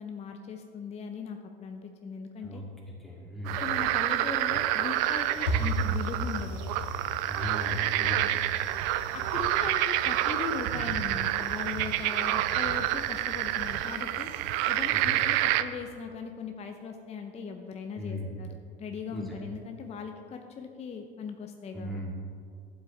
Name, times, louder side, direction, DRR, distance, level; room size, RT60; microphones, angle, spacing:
voice 1, 0.0-2.6 3.6-6.6 9.1-14.3 14.7-22.0, left 6 dB, 20° left, 5 dB, 0.6 m, -39 dB
voice 2, 3.0-3.6 7.3-8.5 14.9-15.1 18.0-18.4 19.1-19.3 21.7-22.1, left 1 dB, ahead, -4 dB, 2.5 m, -37 dB
sound 1, 3.5-15.6, right 14 dB, 50° right, 0.5 m, -28 dB
sound 2, 4.7-15.9, right 1 dB, 80° left, 1.7 m, -38 dB
sound 3, 4.9-14.0, right 4 dB, 25° right, 1.3 m, -52 dB
12.0 x 7.6 x 3.3 m, 2.3 s
figure-of-eight pair, 75°, 30 cm